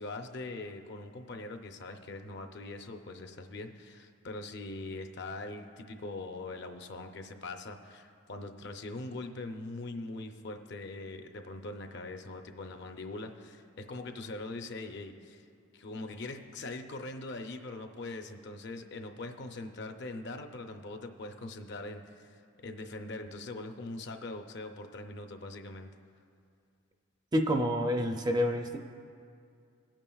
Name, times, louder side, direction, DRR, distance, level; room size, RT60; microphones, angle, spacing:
voice 1, 0.0-15.4 15.7-25.9, left 2 dB, 50° left, 5 dB, 0.6 m, -42 dB
voice 2, 27.3-28.8, equal, 20° right, 4 dB, 0.4 m, -28 dB
21.0 x 8.8 x 2.3 m, 2.3 s
head